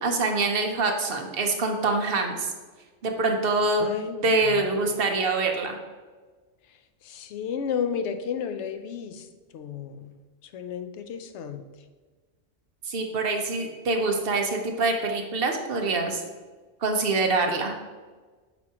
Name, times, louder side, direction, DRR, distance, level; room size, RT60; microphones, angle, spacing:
voice 1, 0.0-2.5 3.0-3.9 4.2-5.8 12.9-16.2 16.8-17.8, right 3 dB, 55° right, 3 dB, 0.9 m, -25 dB
voice 2, 3.8-4.9 7.0-9.3 9.5-10.1 10.5-11.6, left 7 dB, 70° left, 8 dB, 0.8 m, -32 dB
8.2 x 4.5 x 2.9 m, 1.4 s
omnidirectional pair, 1.3 m